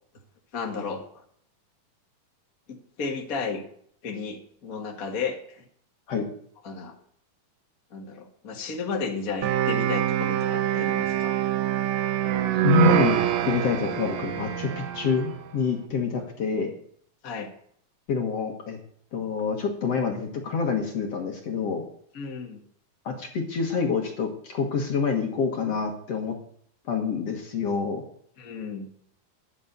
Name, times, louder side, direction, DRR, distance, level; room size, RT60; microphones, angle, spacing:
voice 1, 0.5-1.1 2.7-3.6 4.0-5.6 6.6-6.9 7.9-11.4 17.2-17.5 22.1-22.6 28.4-28.9, left 5 dB, 40° left, 1 dB, 1.4 m, -33 dB
sound 1, 9.4-15.4, right 11 dB, 85° right, 2.8 m, -25 dB
voice 2, 12.5-16.7 18.1-18.8 19.1-21.8 23.0-26.4 26.9-28.0, left 5 dB, 55° left, 2 dB, 2.0 m, -27 dB
10.0 x 8.4 x 8.2 m, 0.64 s
omnidirectional pair, 4.2 m